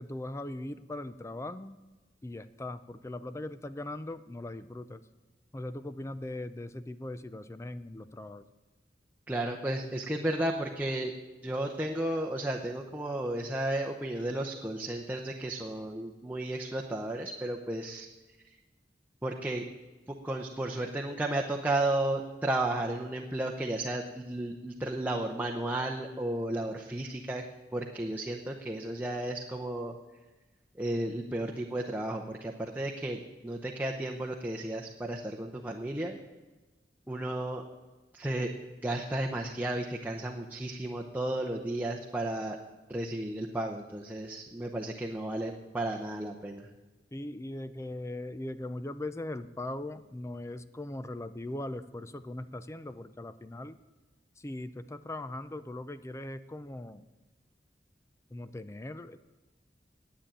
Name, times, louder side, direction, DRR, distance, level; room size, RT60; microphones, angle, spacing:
voice 1, 0.0-1.8 2.2-5.0 5.5-8.5 47.1-53.8 54.4-57.0 58.3-59.2, left 1 dB, 15° left, 13 dB, 0.4 m, -40 dB
voice 2, 9.3-11.1 11.4-18.1 19.2-19.6 20.2-27.4 27.7-29.9 30.7-36.2 37.1-37.6 38.1-38.5 38.8-42.6 42.9-46.7, right 1 dB, 10° right, 0 dB, 0.8 m, -33 dB
10.5 x 8.3 x 8.9 m, 1.2 s
head